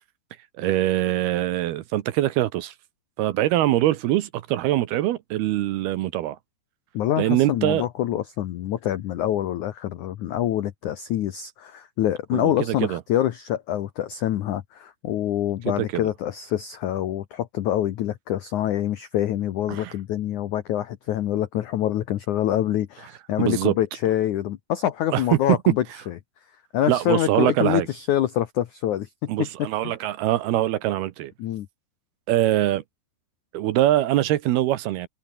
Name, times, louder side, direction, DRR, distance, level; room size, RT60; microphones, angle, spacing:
voice 1, 0.6-2.7 3.2-6.4 7.2-7.9 12.3-13.0 15.9-16.0 19.7-19.9 23.4-23.7 25.1-25.2 26.9-27.9 29.3-31.3 32.3-32.8 33.5-35.1, right 14 dB, 70° right, 2.7 m, -23 dB
voice 2, 6.9-26.2 26.7-29.9 31.4-31.7, left 12 dB, 85° left, 1.7 m, -26 dB
open air
omnidirectional pair, 5.2 m